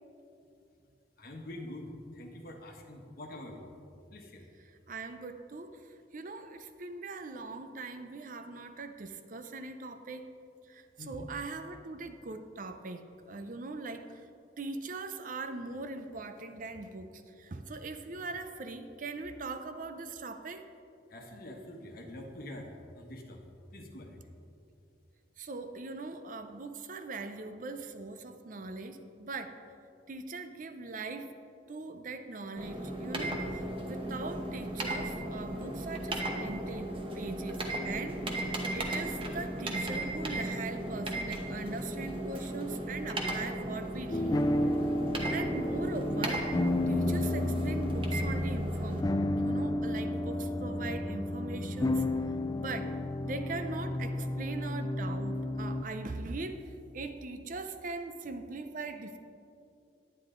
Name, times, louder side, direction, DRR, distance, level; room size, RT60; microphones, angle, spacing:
voice 1, 1.2-3.7 4.1-4.4 11.0-11.3 21.1-22.7 23.0-23.5 23.7-24.2, left 1 dB, 55° left, 2 dB, 1.2 m, -45 dB
voice 2, 4.9-5.7 6.1-10.3 10.7-14.1 14.6-17.1 17.4-20.6 25.4-29.6 30.1-31.3 31.7-44.4 45.3-46.5 46.9-49.1 49.4-52.0 52.6-52.9 53.2-56.7 56.9-59.2, right 3 dB, 50° right, 8 dB, 0.6 m, -41 dB
sound 1, 32.6-49.0, right 1 dB, 30° right, 1.0 m, -36 dB
sound 2, 44.1-55.8, left 1 dB, 20° left, 0.3 m, -31 dB
10.0 x 9.7 x 3.8 m, 2.5 s
head